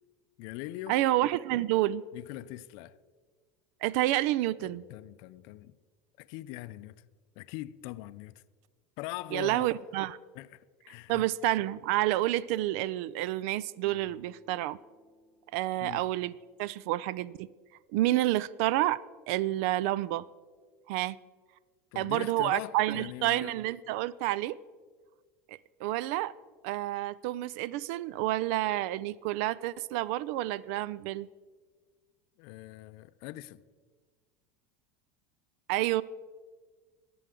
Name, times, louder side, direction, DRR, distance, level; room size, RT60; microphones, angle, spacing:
voice 1, 0.4-1.0 2.1-3.0 4.6-5.7 6.2-7.0 7.4-8.4 9.0-9.7 10.3-10.6 10.9-11.3 15.8-16.0 21.9-23.5 32.4-33.6, left 16 dB, 65° left, 0.5 m, -42 dB
voice 2, 0.9-2.0 3.8-4.8 9.3-10.2 11.1-14.8 15.5-16.3 16.6-17.5 17.9-19.0 19.3-20.2 20.9-21.2 22.0-24.5 25.5-26.3 26.6-31.3 35.7-36.0, right 15 dB, 70° right, 0.3 m, -29 dB
sound 1, 13.8-17.4, left 1 dB, 45° right, 3.4 m, -60 dB
21.0 x 7.7 x 3.7 m
supercardioid pair, 105°, 8 cm